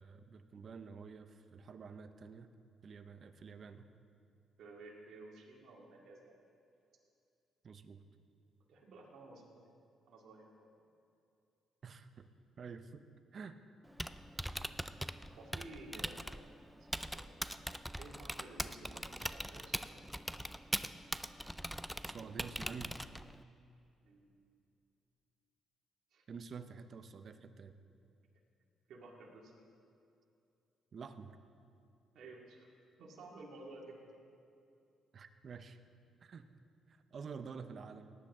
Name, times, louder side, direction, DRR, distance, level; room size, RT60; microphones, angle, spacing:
voice 1, 0.0-2.5 2.8-3.9 7.6-8.0 11.8-12.3 12.6-13.0 13.3-13.6 22.0-22.9 26.3-27.8 30.9-31.4 35.1-35.8 36.2-36.5 36.9-38.1, right 5 dB, 50° right, 10 dB, 0.7 m, -49 dB
voice 2, 4.6-6.3 8.7-9.8 10.1-10.7 15.3-16.4 16.8-17.3 17.9-20.0 24.0-24.4 26.1-26.2 28.9-29.7 32.1-32.7 33.0-34.0, right 2 dB, 75° right, -2 dB, 2.2 m, -54 dB
Typing, 13.8-23.4, equal, ahead, 0.4 m, -42 dB
18.5 x 10.0 x 3.7 m, 2.6 s
cardioid pair, 90°, 0 cm